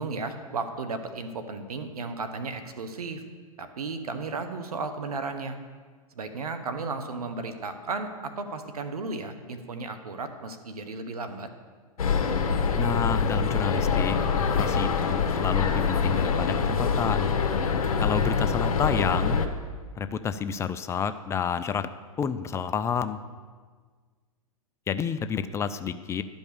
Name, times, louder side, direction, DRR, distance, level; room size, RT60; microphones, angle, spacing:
voice 1, 0.0-3.2 3.6-5.6 6.1-11.5 18.1-18.4, right 3 dB, 85° right, 8 dB, 1.0 m, -34 dB
sound 1, 12.0-19.5, left 5 dB, 75° left, 1.0 m, -25 dB
voice 2, 12.7-17.3 18.0-19.4 20.0-21.9 22.2-23.2 24.9-26.2, left 7 dB, 15° left, 11 dB, 0.3 m, -30 dB
12.0 x 5.3 x 6.9 m, 1.5 s
hypercardioid pair, 115°, 19 cm